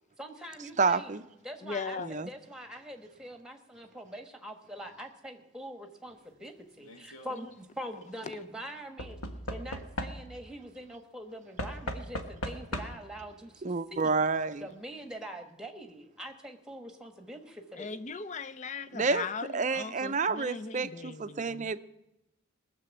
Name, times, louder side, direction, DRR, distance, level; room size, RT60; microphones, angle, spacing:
voice 1, 0.2-1.1 1.4-9.2 9.5-14.1 14.6-17.9, equal, 5° right, 1.3 m, -44 dB
voice 2, 0.8-1.2 2.0-2.3 13.6-14.7 18.9-19.3 19.5-21.8, right 4 dB, 35° right, 0.5 m, -29 dB
voice 3, 1.6-2.1 7.3-7.4 17.7-21.7, left 4 dB, 35° left, 0.5 m, -39 dB
Knock / Wood, 6.8-7.3 9.0-10.5 11.6-13.2 14.2-14.3 14.5-14.6, equal, 90° left, 1.5 m, -38 dB
20.0 x 6.9 x 8.2 m
head